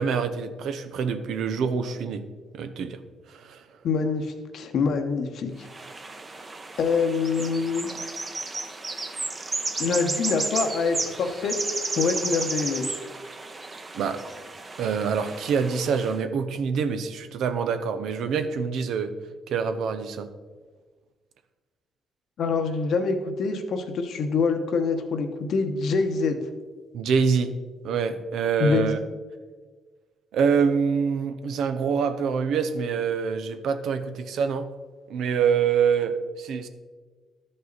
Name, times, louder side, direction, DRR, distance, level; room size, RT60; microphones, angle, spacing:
voice 1, 0.0-2.3 2.5-3.0 3.3-3.6 13.9-14.2 14.8-19.1 19.5-20.3 26.9-27.5 27.8-29.0 30.3-34.7 35.1-36.7, right 6 dB, 75° right, 9 dB, 0.7 m, -25 dB
voice 2, 3.8-5.7 6.8-7.9 9.8-11.6 12.0-13.0 22.4-26.4 28.6-28.9, left 4 dB, 70° left, 6 dB, 1.0 m, -25 dB
sound 1, 5.6-16.2, right 3 dB, 30° right, 0.9 m, -33 dB
12.5 x 5.5 x 4.0 m, 1.4 s
cardioid pair, 90°, 0 cm